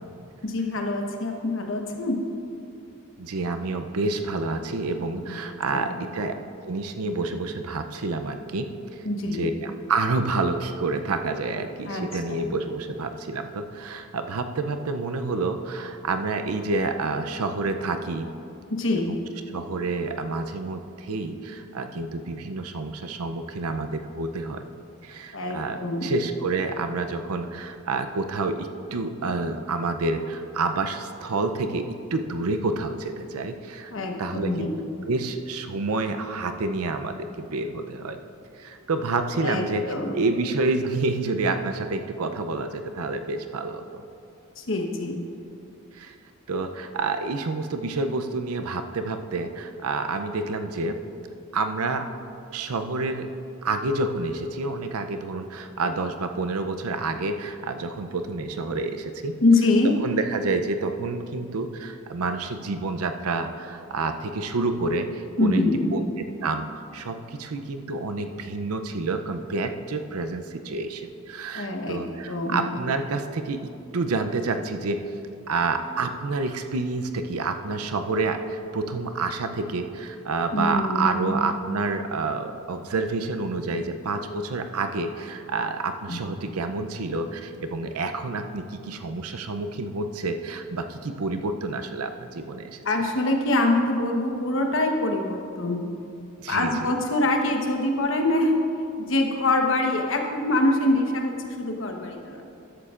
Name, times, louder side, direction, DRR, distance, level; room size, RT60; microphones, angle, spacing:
voice 1, 0.4-2.2 5.2-5.4 5.7-6.0 9.0-9.5 11.9-12.5 18.7-19.1 25.3-26.1 33.9-34.7 39.4-40.1 44.6-45.2 59.4-59.9 65.4-65.9 71.5-72.7 80.5-81.4 86.1-86.2 92.8-95.9 96.5-98.6 99.0-102.4, left 2 dB, 60° left, 2 dB, 1.1 m, -24 dB
voice 2, 3.2-6.3 6.6-18.3 18.9-19.2 19.5-24.6 25.0-33.9 34.2-34.7 35.1-38.2 38.6-44.0 45.9-46.1 46.5-51.0 51.5-52.1 52.5-53.3 53.6-59.4 60.0-65.6 65.9-66.7 66.9-75.0 75.5-92.8 96.4-96.9, right 3 dB, 85° right, 7 dB, 0.6 m, -28 dB
13.5 x 11.5 x 2.5 m, 2.5 s
head